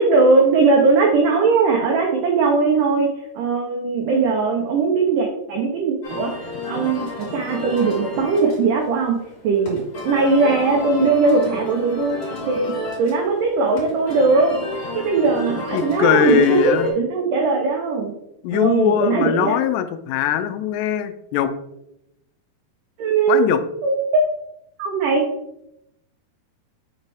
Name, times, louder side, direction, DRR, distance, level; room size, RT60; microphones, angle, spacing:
voice 1, 0.0-3.1 3.4-6.3 6.7-7.1 7.3-9.2 9.4-12.2 12.5-12.7 13.0-14.5 15.0-18.1 18.5-19.6 23.0-23.5 23.8-24.2 24.8-25.3, right 4 dB, 85° right, 1 dB, 1.8 m, -19 dB
sound 1, 6.0-16.9, left 2 dB, 40° left, 2.2 m, -32 dB
voice 2, 15.7-16.9 18.4-21.5 23.3-23.6, left 9 dB, 85° left, 10 dB, 2.6 m, -20 dB
7.8 x 4.3 x 3.4 m, 0.82 s
omnidirectional pair, 4.8 m